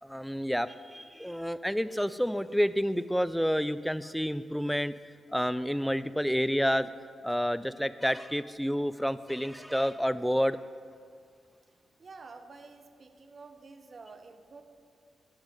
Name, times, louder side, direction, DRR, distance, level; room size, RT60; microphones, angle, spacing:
voice 1, 0.0-4.9 5.3-6.9 7.2-10.6, equal, ahead, 15 dB, 0.3 m, -29 dB
voice 2, 12.0-14.6, right 4 dB, 55° right, 8 dB, 0.7 m, -49 dB
8.0 x 5.1 x 7.4 m, 2.1 s
supercardioid pair, 50°, 0 cm